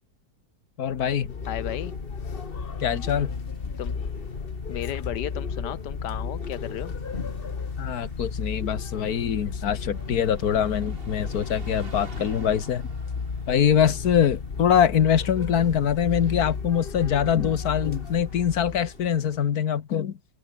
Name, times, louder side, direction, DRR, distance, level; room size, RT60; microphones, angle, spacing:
voice 1, 0.8-1.3 2.8-3.3 7.8-12.8 13.5-20.2, left 8 dB, 60° left, 1.6 m, -23 dB
sound 1, 0.9-19.1, left 5 dB, 35° left, 1.4 m, -33 dB
Bus, 1.1-19.7, right 3 dB, 30° right, 2.5 m, -50 dB
voice 2, 1.5-2.0 3.8-3.9 4.7-7.0, left 12 dB, 75° left, 1.2 m, -34 dB
omnidirectional pair, 1.9 m